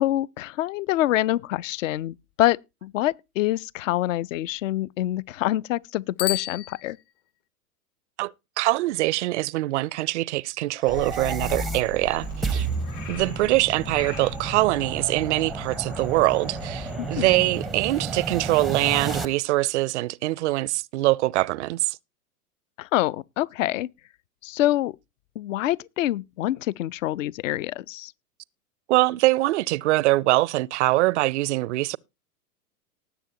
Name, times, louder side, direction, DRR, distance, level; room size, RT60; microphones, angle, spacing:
voice 1, 0.0-7.0 17.0-17.3 22.8-23.9 24.4-25.0 25.4-28.1, left 14 dB, 55° left, 0.5 m, -26 dB
Bicycle bell, 6.1-7.5, left 13 dB, 40° left, 0.8 m, -32 dB
voice 2, 8.2-12.7 13.1-22.0 28.9-32.0, right 19 dB, 50° right, 0.4 m, -23 dB
sound 1, 10.8-19.3, right 4 dB, ahead, 0.5 m, -32 dB
Frog, 10.9-17.6, left 5 dB, 85° left, 5.4 m, -40 dB
19.5 x 7.0 x 2.7 m
hypercardioid pair, 105°, 46 cm